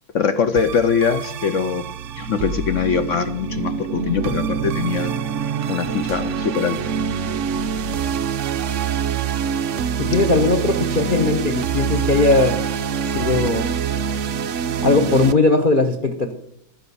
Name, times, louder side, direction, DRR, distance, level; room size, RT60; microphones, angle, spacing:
voice 1, 0.1-1.8 2.2-5.1 5.7-6.8, left 6 dB, 75° left, 11 dB, 0.7 m, -22 dB
sound 1, 0.6-15.3, right 7 dB, 80° right, 0.6 m, -25 dB
voice 2, 10.0-12.6 13.1-13.7 14.8-16.3, left 3 dB, 35° left, 6 dB, 0.9 m, -18 dB
13.0 x 10.0 x 6.9 m, 0.71 s
omnidirectional pair, 2.2 m